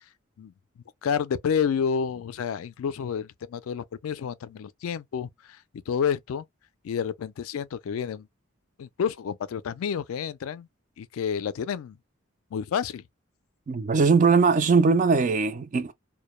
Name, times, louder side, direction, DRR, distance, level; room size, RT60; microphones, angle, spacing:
voice 1, 1.0-5.6 5.9-6.4 6.8-8.3 8.8-10.7 11.0-12.0 12.5-13.0, left 7 dB, 80° left, 0.3 m, -29 dB
voice 2, 13.7-15.9, right 4 dB, 35° right, 0.3 m, -20 dB
2.2 x 2.0 x 2.9 m
head